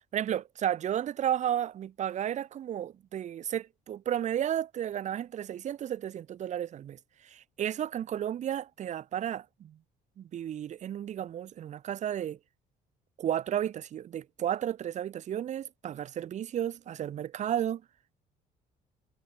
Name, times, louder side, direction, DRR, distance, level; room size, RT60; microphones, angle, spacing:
voice 1, 0.1-7.0 7.2-9.8 10.2-12.4 13.2-17.8, right 10 dB, 45° right, 0.6 m, -33 dB
cardioid pair, 110°, 17 cm